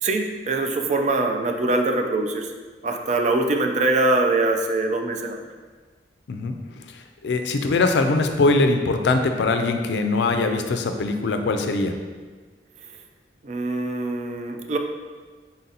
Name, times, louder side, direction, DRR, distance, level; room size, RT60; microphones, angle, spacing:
voice 1, 0.0-2.5 2.8-5.4 13.4-14.8, right 2 dB, 40° right, 3 dB, 0.4 m, -23 dB
voice 2, 6.9-11.9, left 3 dB, 70° left, 6 dB, 0.4 m, -22 dB
4.0 x 2.7 x 3.9 m, 1.4 s
head